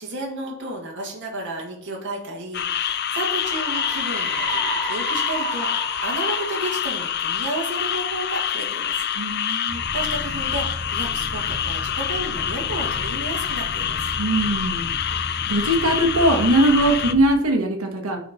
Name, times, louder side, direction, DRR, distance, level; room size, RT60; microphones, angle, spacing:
voice 1, 0.0-9.0 9.5-14.0, right 1 dB, 60° right, -2 dB, 2.0 m, -32 dB
sound 1, 2.5-17.1, left 9 dB, 50° left, 0.5 m, -26 dB
sound 2, 3.4-7.9, right 1 dB, 5° left, 1.9 m, -32 dB
voice 2, 9.1-9.8 14.2-14.9 15.5-18.2, right 1 dB, 90° right, 2 dB, 1.5 m, -20 dB
sound 3, 9.7-17.2, equal, 20° right, 1.1 m, -35 dB
11.0 x 4.3 x 4.3 m, 0.64 s
head